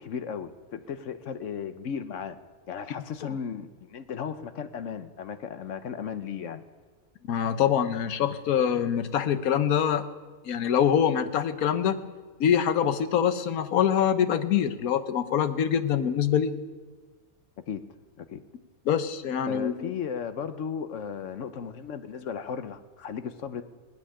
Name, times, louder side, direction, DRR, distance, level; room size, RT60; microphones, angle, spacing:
voice 1, 0.0-2.4 2.7-6.6 17.7-17.8 18.2-18.4 19.4-23.6, left 7 dB, 65° left, 10 dB, 1.0 m, -35 dB
voice 2, 7.3-10.0 10.4-12.0 12.4-16.5 18.9-19.9, left 8 dB, 80° left, 11 dB, 1.3 m, -24 dB
17.5 x 7.8 x 10.0 m, 1.4 s
omnidirectional pair, 1.5 m